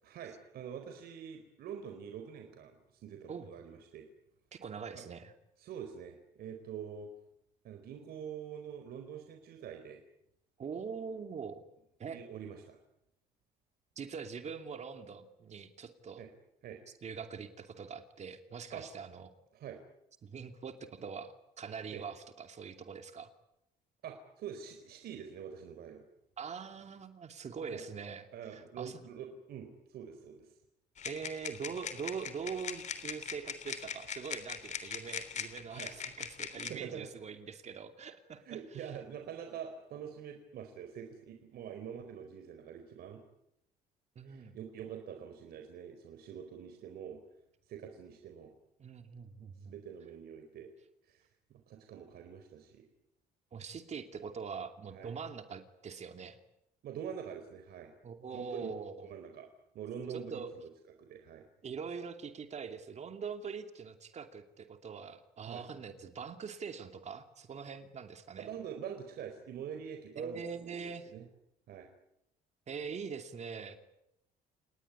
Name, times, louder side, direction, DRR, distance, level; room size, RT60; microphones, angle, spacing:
voice 1, 0.0-4.1 4.9-5.0 5.6-7.1 7.6-10.0 12.1-12.8 16.2-16.3 16.6-16.8 18.7-18.8 19.5-19.8 21.9-22.0 24.0-26.0 27.7-27.8 28.3-30.5 35.7-35.9 36.6-37.1 38.5-43.2 44.2-47.2 47.7-48.5 49.6-50.7 51.1-52.8 54.9-55.2 56.8-57.9 58.3-58.7 59.0-59.5 59.7-60.4 61.0-61.4 65.5-65.7 68.4-71.3 71.7-71.9, right 8 dB, 65° right, 5 dB, 4.3 m, -45 dB
voice 2, 4.5-5.3 10.6-11.6 12.0-12.2 14.0-16.2 17.0-19.3 20.2-23.3 26.4-29.0 31.0-38.9 44.2-44.5 48.8-49.8 53.5-56.4 58.0-59.1 60.3-60.5 61.6-68.5 70.2-71.1 72.7-73.8, right 6 dB, 40° right, 7 dB, 2.7 m, -43 dB
sound 1, 31.0-36.7, left 7 dB, 45° left, 3.4 m, -41 dB
29.0 x 19.5 x 9.8 m, 0.81 s
cardioid pair, 110°, 17 cm